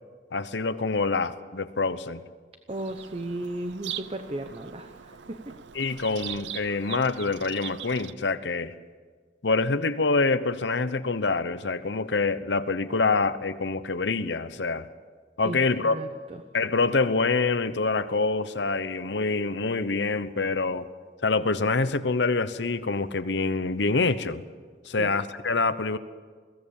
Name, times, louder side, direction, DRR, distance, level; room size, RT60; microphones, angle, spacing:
voice 1, 0.3-2.2 5.7-8.7 9.4-14.9 15.4-16.0 16.5-20.9 21.2-24.4 24.9-26.0, left 3 dB, 80° left, 13 dB, 0.9 m, -26 dB
voice 2, 2.7-5.5 15.4-16.4 24.9-25.1, right 1 dB, 35° right, 8 dB, 0.8 m, -35 dB
Bird vocalization bird call bird song, 2.7-8.1, right 10 dB, 85° right, 0.7 m, -41 dB
21.5 x 16.5 x 7.3 m, 1.5 s
head